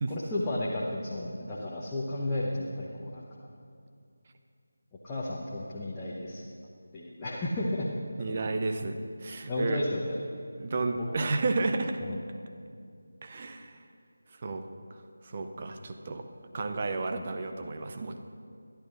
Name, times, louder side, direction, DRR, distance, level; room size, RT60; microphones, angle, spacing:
voice 1, 0.1-3.2 5.0-6.4 6.9-7.9 9.5-10.2 11.0-11.1 12.0-12.2, left 1 dB, 10° left, -7 dB, 1.0 m, -33 dB
voice 2, 8.2-9.8 10.5-12.0 13.2-13.8 14.4-14.6 15.2-16.2 16.5-18.2, right 3 dB, 30° right, 6 dB, 0.7 m, -32 dB
26.5 x 11.5 x 2.6 m, 2.4 s
figure-of-eight pair, 160°, 0 cm